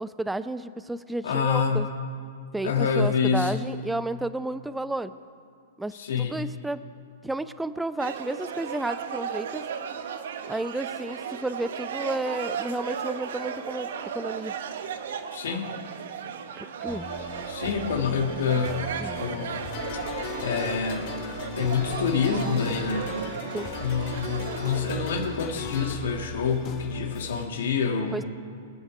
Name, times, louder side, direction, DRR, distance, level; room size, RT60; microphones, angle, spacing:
voice 1, 0.0-1.9 2.5-5.1 5.8-6.8 7.2-9.6 10.5-14.5 16.6-17.1 19.0-19.2 23.5-23.7 28.1-28.2, right 2 dB, 5° right, 13 dB, 0.5 m, -32 dB
voice 2, 1.2-1.9 2.6-3.7 5.9-6.4 15.3-15.7 17.5-19.7 20.4-21.1 21.5-23.1 23.8-28.2, left 6 dB, 75° left, 3 dB, 1.8 m, -27 dB
sound 1, 8.0-25.1, right 7 dB, 70° right, 1.0 m, -35 dB
sound 2, 16.9-27.5, left 5 dB, 35° left, 1.8 m, -41 dB
sound 3, 19.7-25.9, left 3 dB, 55° left, 4.4 m, -37 dB
24.0 x 8.0 x 5.0 m, 2.2 s
hypercardioid pair, 115°, 0 cm